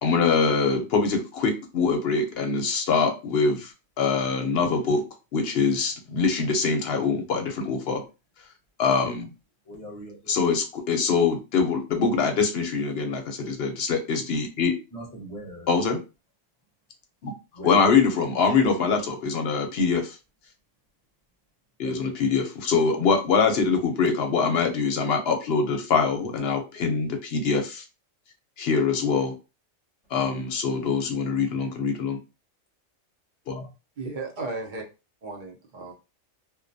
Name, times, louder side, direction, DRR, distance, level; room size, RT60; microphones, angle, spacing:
voice 1, 0.0-3.7 4.0-5.0 5.3-8.0 8.8-9.3 10.3-14.7 15.7-16.0 17.2-17.3 17.6-20.2 21.8-27.8 28.6-29.3 30.1-32.2 33.5-33.6, left 5 dB, 65° left, 0.8 m, -24 dB
voice 2, 9.6-10.3 14.9-15.7 17.5-17.8 21.8-22.1 30.8-30.9, right 1 dB, 35° left, 0.8 m, -40 dB
voice 3, 34.0-34.8 35.2-35.9, right 3 dB, 50° right, 0.7 m, -35 dB
2.2 x 2.2 x 2.5 m
omnidirectional pair, 1.2 m